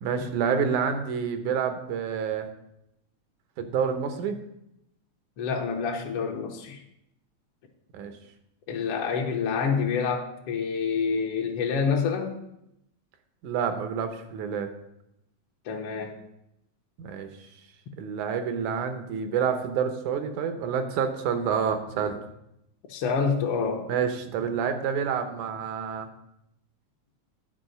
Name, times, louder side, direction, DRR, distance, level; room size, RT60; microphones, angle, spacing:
voice 1, 0.0-2.5 3.6-4.4 7.9-8.1 13.4-14.7 17.0-17.3 18.0-22.2 23.9-26.1, right 7 dB, 85° right, 7 dB, 2.4 m, -28 dB
voice 2, 5.4-6.8 8.7-12.4 15.6-16.2 22.9-23.9, left 5 dB, 65° left, 0 dB, 1.6 m, -27 dB
10.5 x 4.9 x 6.4 m, 0.82 s
omnidirectional pair, 3.4 m